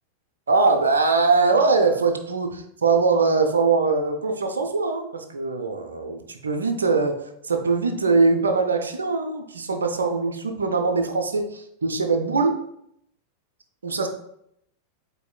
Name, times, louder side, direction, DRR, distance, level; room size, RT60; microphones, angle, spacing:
voice 1, 0.5-12.6 13.8-14.1, right 4 dB, 70° right, 4 dB, 0.4 m, -22 dB
7.6 x 2.6 x 2.2 m, 0.74 s
figure-of-eight pair, 90°, 0 cm